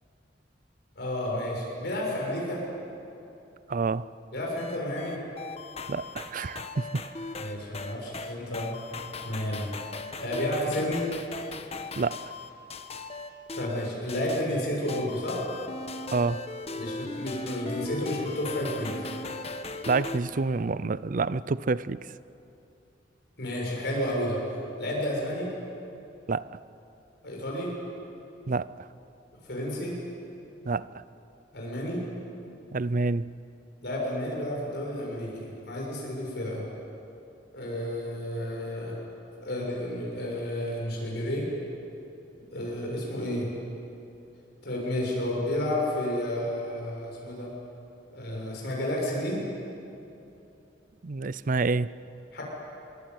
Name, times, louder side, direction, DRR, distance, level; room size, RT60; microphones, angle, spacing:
voice 1, 0.9-2.6 4.3-5.2 7.4-8.7 9.2-9.7 10.2-11.1 13.5-15.4 16.8-18.9 23.4-24.4 24.8-25.5 27.2-27.7 29.4-30.0 31.5-32.0 33.8-36.6 37.5-38.9 39.4-41.5 42.5-43.5 44.6-47.5 48.1-49.4 52.3-52.4, left 1 dB, 65° left, 6.8 m, -31 dB
voice 2, 3.7-4.1 5.9-7.0 12.0-12.3 16.1-16.5 19.9-22.1 26.3-26.6 28.5-28.9 30.6-31.0 32.7-33.3 51.0-52.0, right 3 dB, 50° right, 0.5 m, -28 dB
sound 1, 4.6-20.2, left 3 dB, 35° left, 1.4 m, -38 dB
25.0 x 23.5 x 9.4 m
head